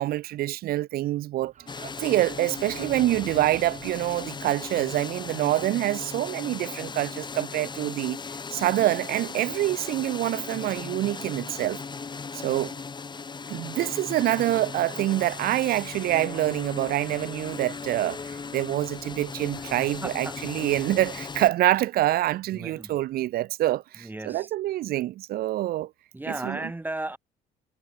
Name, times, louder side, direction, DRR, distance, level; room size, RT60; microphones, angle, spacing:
voice 1, 0.0-1.5 2.0-8.2 8.5-11.8 12.3-12.7 13.5-25.9 26.4-26.6, right 15 dB, 65° right, 0.6 m, -26 dB
sound 1, 1.4-6.3, right 9 dB, 45° right, 2.6 m, -47 dB
sound 2, 1.7-21.5, left 5 dB, 25° left, 2.9 m, -37 dB
voice 2, 19.6-20.4 22.5-23.0 24.0-24.5 26.1-27.2, right 2 dB, 10° right, 2.1 m, -36 dB
cardioid pair, 110°, 17 cm